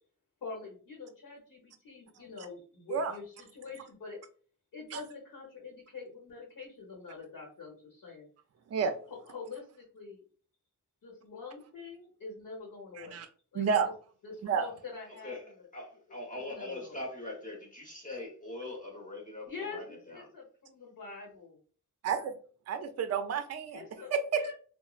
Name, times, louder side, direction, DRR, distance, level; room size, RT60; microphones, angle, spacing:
voice 1, 0.4-4.2 4.7-8.3 9.2-10.2 11.0-13.2 13.5-13.9 14.2-15.7 16.3-17.0 19.5-21.6 23.7-24.5, left 4 dB, 90° left, 0.9 m, -45 dB
voice 2, 13.5-13.9 14.4-14.7 22.0-22.3 22.7-23.8 24.1-24.5, right 6 dB, 50° right, 0.4 m, -30 dB
voice 3, 15.7-20.3, left 2 dB, 25° left, 0.9 m, -42 dB
3.0 x 2.0 x 2.3 m
wide cardioid pair, 95°, 32 cm